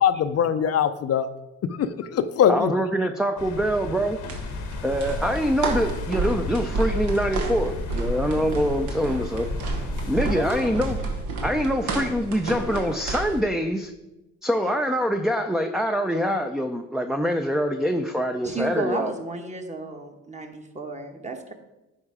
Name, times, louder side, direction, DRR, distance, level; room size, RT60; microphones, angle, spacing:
voice 1, 0.0-1.3 1.8-2.7, left 8 dB, 55° left, 10 dB, 0.5 m, -21 dB
voice 2, 2.5-4.2 4.8-9.5 10.1-11.0 11.4-13.9 14.4-19.1, equal, ahead, 5 dB, 0.5 m, -24 dB
sound 1, 3.4-11.2, left 5 dB, 80° left, 1.0 m, -36 dB
sound 2, 4.3-13.4, right 2 dB, 80° right, 1.4 m, -30 dB
voice 3, 10.3-10.7 18.4-21.5, right 2 dB, 25° right, 4 dB, 1.2 m, -32 dB
9.9 x 4.3 x 4.9 m, 1.0 s
cardioid pair, 90°, 30 cm